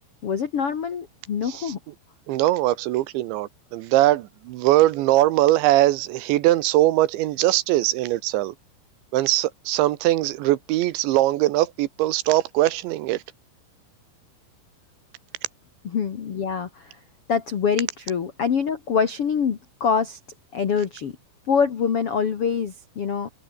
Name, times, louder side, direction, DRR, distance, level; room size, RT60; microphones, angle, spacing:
voice 1, 0.2-1.8 15.8-17.0 17.3-20.2 20.5-21.2 21.5-23.3, left 6 dB, 75° left, 1.3 m, -25 dB
voice 2, 2.3-8.5 9.1-13.2, right 16 dB, 75° right, 3.1 m, -21 dB
omnidirectional pair, 5.6 m